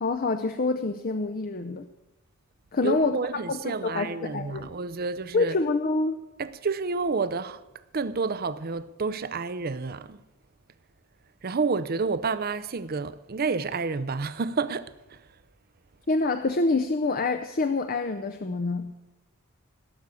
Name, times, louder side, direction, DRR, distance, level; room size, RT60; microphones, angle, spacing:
voice 1, 0.0-1.9 2.7-3.2 3.5-4.7 5.3-6.2 16.1-18.9, left 3 dB, 40° left, 0.6 m, -26 dB
voice 2, 2.8-5.6 6.4-7.6 7.9-10.2 11.4-15.2, right 4 dB, 45° right, 0.6 m, -29 dB
17.0 x 6.5 x 8.3 m
head